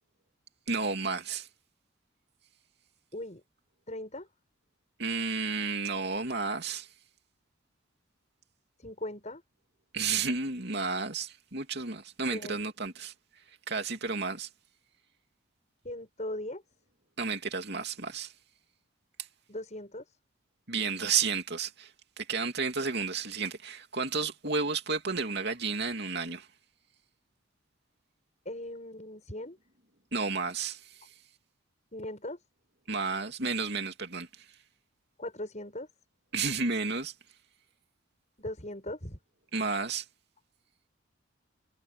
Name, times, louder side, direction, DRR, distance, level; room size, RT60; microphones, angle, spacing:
voice 1, 0.7-1.5 5.0-6.9 9.9-13.1 13.7-14.5 17.2-18.3 20.7-21.9 22.2-26.5 30.1-31.1 32.9-34.4 36.3-37.1 39.5-40.0, right 4 dB, 55° right, 2.9 m, -32 dB
voice 2, 3.1-3.4 3.9-4.3 8.8-9.4 12.3-12.6 15.8-16.6 19.5-20.0 28.4-29.6 31.9-32.4 35.2-35.9 38.4-39.2, left 1 dB, 35° left, 7.5 m, -39 dB
head